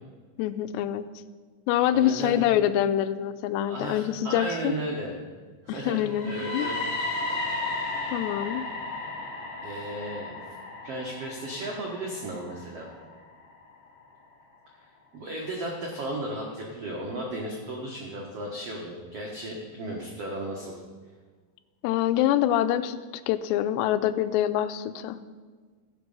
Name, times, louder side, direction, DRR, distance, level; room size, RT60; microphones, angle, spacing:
voice 1, 0.4-1.1 1.7-4.7 5.7-6.7 8.1-8.6 21.8-23.0 23.3-25.2, left 11 dB, 90° left, 12 dB, 2.7 m, -25 dB
voice 2, 1.9-2.4 3.6-5.1 5.6-6.8 9.6-10.3 10.8-12.9 15.1-20.7, right 1 dB, 75° right, -2 dB, 1.4 m, -34 dB
sound 1, 6.0-13.9, left 2 dB, 55° left, 3.0 m, -34 dB
16.0 x 6.1 x 5.4 m, 1.5 s
omnidirectional pair, 4.9 m